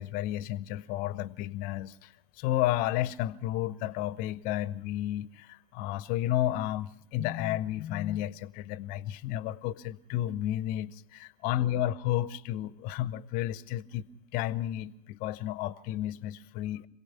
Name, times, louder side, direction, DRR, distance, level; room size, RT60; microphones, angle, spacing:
voice 1, 0.0-14.1 14.3-16.9, left 13 dB, 50° left, 18 dB, 0.9 m, -32 dB
26.5 x 17.5 x 5.6 m, 0.71 s
figure-of-eight pair, 80°, 19 cm